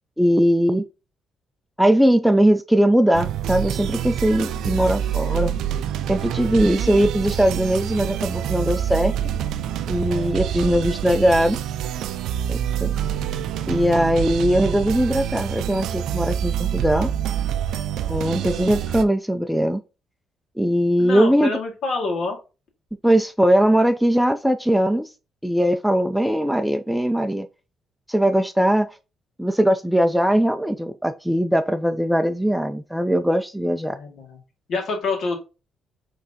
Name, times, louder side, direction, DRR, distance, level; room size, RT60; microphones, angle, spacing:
voice 1, 0.2-0.8 1.8-5.5 6.1-9.1 9.9-11.6 12.5-12.9 13.7-17.1 18.1-19.8 20.6-21.5 23.0-25.1 25.4-27.5 28.1-29.0 29.4-34.0, equal, ahead, 0.4 m, -20 dB
sound 1, 3.1-19.0, right 9 dB, 85° right, 0.3 m, -26 dB
voice 2, 21.0-22.4 33.9-34.4 34.7-35.4, left 3 dB, 65° left, 1.9 m, -26 dB
5.9 x 3.3 x 2.7 m
cardioid pair, 90°, 0 cm